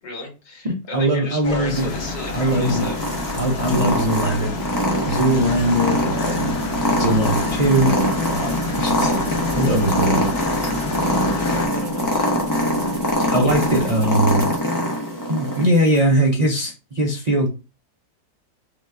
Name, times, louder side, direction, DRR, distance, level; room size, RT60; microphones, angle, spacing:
voice 1, 0.0-3.2 11.2-12.3 12.9-13.5, left 2 dB, 80° left, 0 dB, 2.2 m, -36 dB
voice 2, 0.6-1.9 2.3-2.8 3.4-4.5 5.1-6.6 7.0-8.0 8.3-9.1 9.6-10.2 13.3-14.5 15.3-17.5, right 1 dB, 70° right, 0 dB, 0.4 m, -20 dB
sound 1, 1.4-11.7, left 5 dB, 55° left, 0.7 m, -30 dB
Purr, 1.7-15.7, equal, 20° left, 0.6 m, -23 dB
sound 2, 1.7-4.4 4.7-14.7 15.4-16.0, right 2 dB, 25° right, 1.2 m, -42 dB
5.1 x 2.5 x 3.2 m, 0.32 s
omnidirectional pair, 1.9 m